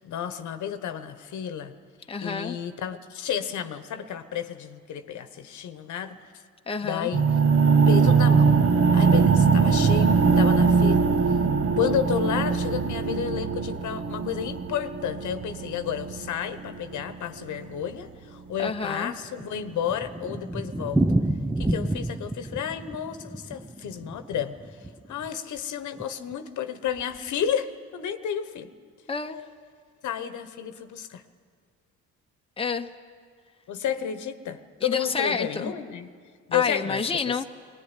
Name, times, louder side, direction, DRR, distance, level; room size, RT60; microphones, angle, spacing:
voice 1, 0.0-1.7 2.2-6.3 6.8-7.2 7.9-8.5 8.9-11.4 11.8-21.0 21.6-24.6 25.1-28.7 30.0-31.2 33.7-36.1 36.5-37.0, left 9 dB, 75° left, 10 dB, 1.2 m, -31 dB
voice 2, 2.1-2.6 6.7-7.1 18.6-19.1 29.1-29.4 32.6-32.9 34.8-35.7 36.5-37.4, left 5 dB, 20° left, 5 dB, 1.0 m, -29 dB
sound 1, 7.1-17.1, right 5 dB, 50° right, 1.4 m, -21 dB
Thunder, 19.2-25.3 25.6-25.7 26.0-26.1 26.3-26.4 27.0-27.3, right 1 dB, 10° right, 0.8 m, -29 dB
20.5 x 18.5 x 9.9 m, 2.1 s
cardioid pair, 90°, 30 cm